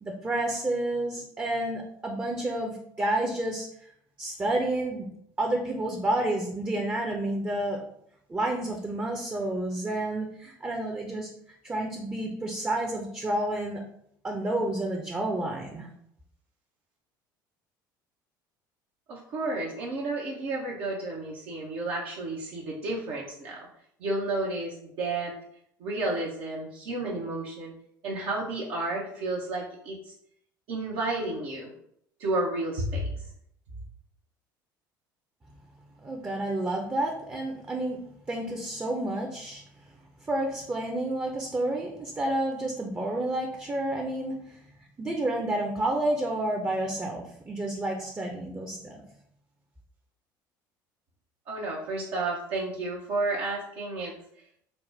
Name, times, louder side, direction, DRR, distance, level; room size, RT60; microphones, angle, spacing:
voice 1, 0.0-3.7 4.2-5.1 5.4-7.8 8.3-11.3 11.6-13.8 14.2-15.9 36.0-38.0 38.3-39.6 40.2-44.6 45.0-49.0, right 1 dB, 20° right, 1 dB, 0.7 m, -30 dB
voice 2, 19.1-23.6 24.0-25.3 25.8-27.7 28.0-30.1 30.7-31.7 32.2-33.2 51.5-54.1, right 2 dB, 60° right, -4 dB, 0.8 m, -31 dB
4.0 x 2.1 x 3.3 m, 0.70 s
hypercardioid pair, 65°, 11 cm